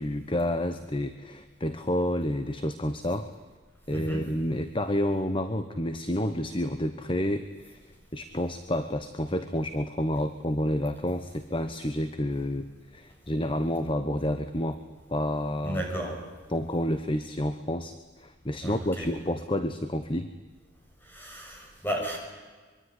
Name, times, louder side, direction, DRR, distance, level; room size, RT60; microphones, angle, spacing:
voice 1, 0.0-3.3 3.9-7.8 8.1-14.8 15.1-15.8 16.5-20.3, left 1 dB, 25° left, 10 dB, 1.1 m, -29 dB
voice 2, 3.9-4.2 15.6-16.1 18.6-19.1 21.1-22.2, right 1 dB, 10° left, 1 dB, 7.2 m, -33 dB
24.5 x 23.5 x 9.9 m, 1.4 s
head